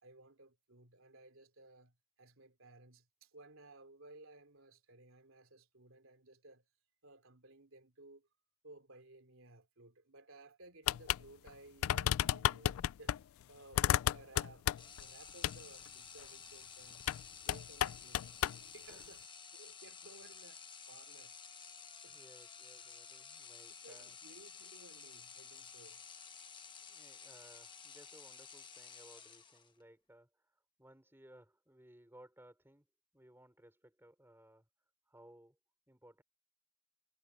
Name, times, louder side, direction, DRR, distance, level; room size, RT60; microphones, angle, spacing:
voice 1, 0.0-6.6 7.0-8.3 8.6-13.2 13.5-14.7 15.0-17.1 17.4-18.3 18.6-19.3 19.5-21.4 22.0-22.2 23.7-26.0, right 2 dB, 75° right, 3.2 m, -59 dB
sound 1, 10.9-11.2 11.5-11.6 11.8-13.2 13.7-15.0 15.4-15.6 17.0-17.2 17.5-18.6, left 11 dB, 85° left, 0.3 m, -32 dB
sound 2, 14.8-29.8, left 6 dB, 25° left, 1.2 m, -53 dB
voice 2, 17.0-17.5 18.9-19.2 22.1-24.2 26.8-32.9 33.1-34.7 35.1-35.6 35.9-36.2, right 1 dB, 10° right, 5.3 m, -61 dB
head